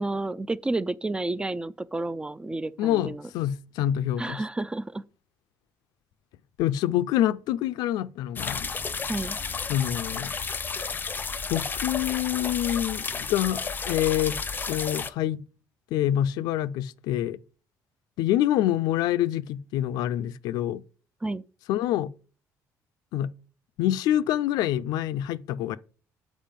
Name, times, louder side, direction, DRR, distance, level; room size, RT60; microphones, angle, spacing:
voice 1, 0.0-3.3 4.2-5.0 9.1-9.4 21.2-21.4, right 2 dB, 15° right, 0.3 m, -30 dB
voice 2, 2.8-4.4 6.6-8.7 9.7-10.3 11.5-14.3 14.7-15.4 15.9-17.4 18.2-20.8 21.7-22.1 23.1-23.3 23.8-25.8, left 12 dB, 85° left, 0.4 m, -26 dB
sound 1, 8.4-15.1, left 5 dB, 30° left, 0.6 m, -32 dB
7.4 x 4.8 x 5.2 m
cardioid pair, 100°, 7 cm